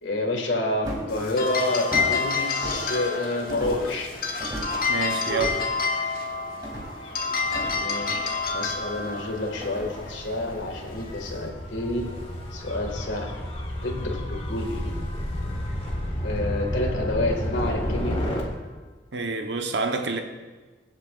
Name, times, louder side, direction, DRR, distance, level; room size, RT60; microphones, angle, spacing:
voice 1, 0.0-4.1 7.7-8.2 8.5-12.0 12.5-13.3 13.8-14.9 16.2-18.2, left 2 dB, 80° left, 2.0 m, -28 dB
sound 1, 0.8-1.2 1.9-2.2 2.6-2.9 3.5-3.9 4.4-4.9 5.3-5.7 6.6-7.0 7.5-8.3 9.6-10.1 10.5-10.6, equal, 25° right, 2.5 m, -34 dB
sound 2, 1.1-11.5, left 4 dB, 50° left, 1.2 m, -29 dB
Gull seagull / Waves surf / Siren, 3.7-18.4, equal, 30° left, 1.5 m, -33 dB
voice 2, 4.9-5.7 19.1-20.2, right 4 dB, 70° right, 0.9 m, -28 dB
23.0 x 7.9 x 2.5 m
head